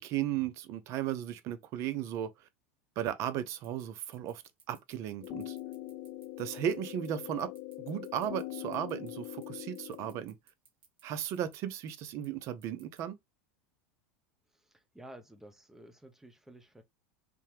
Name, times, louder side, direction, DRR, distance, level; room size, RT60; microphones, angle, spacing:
voice 1, 0.0-2.3 3.0-4.4 4.7-5.6 6.4-7.5 7.8-10.4 11.0-13.1, right 10 dB, 50° right, 0.7 m, -35 dB
sound 1, 3.5-13.0, right 6 dB, 85° right, 1.3 m, -61 dB
sound 2, 5.2-10.2, left 16 dB, 45° left, 0.5 m, -42 dB
voice 2, 14.5-16.8, right 1 dB, 5° right, 0.8 m, -53 dB
3.5 x 2.8 x 3.3 m
supercardioid pair, 110°, 6 cm